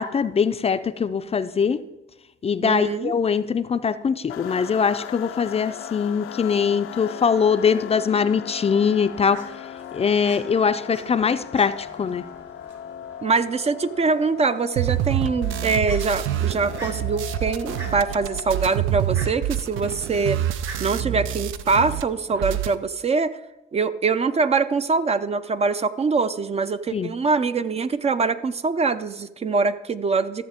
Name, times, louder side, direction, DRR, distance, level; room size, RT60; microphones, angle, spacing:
voice 1, 0.0-1.8 2.4-9.4 9.9-12.2 26.9-27.1, left 6 dB, 30° left, 11 dB, 0.4 m, -22 dB
voice 2, 2.6-3.1 13.2-20.4 20.8-23.4 23.7-30.5, right 4 dB, 30° right, 12 dB, 0.4 m, -23 dB
sound 1, 4.3-18.8, left 9 dB, 90° left, 0.5 m, -38 dB
Fowl, 8.7-22.4, right 2 dB, 60° right, 2.3 m, -46 dB
sound 2, 14.8-22.0 22.3-22.8, right 12 dB, 85° right, 0.5 m, -27 dB
13.5 x 7.1 x 3.6 m, 1.0 s
cardioid pair, 90°, 20 cm